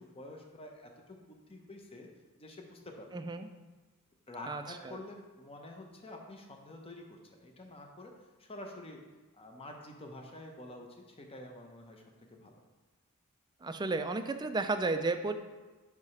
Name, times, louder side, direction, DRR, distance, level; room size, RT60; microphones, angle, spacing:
voice 1, 0.0-2.1 2.4-3.1 4.3-9.0 9.3-12.5, left 1 dB, 25° left, 2 dB, 0.8 m, -48 dB
voice 2, 3.1-3.5 4.5-5.0 13.6-15.3, right 3 dB, 20° right, 8 dB, 0.3 m, -33 dB
4.8 x 4.8 x 5.5 m, 1.2 s
head